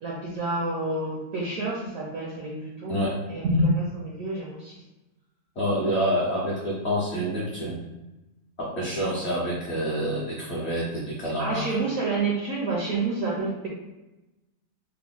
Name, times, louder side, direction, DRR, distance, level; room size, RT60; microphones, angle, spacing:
voice 1, 0.0-3.0 3.3-4.7 11.4-13.7, right 2 dB, 65° right, -3 dB, 0.8 m, -28 dB
voice 2, 5.6-7.8 8.6-11.7, equal, 55° left, -7 dB, 0.7 m, -27 dB
3.4 x 2.1 x 3.7 m, 1.0 s
omnidirectional pair, 1.8 m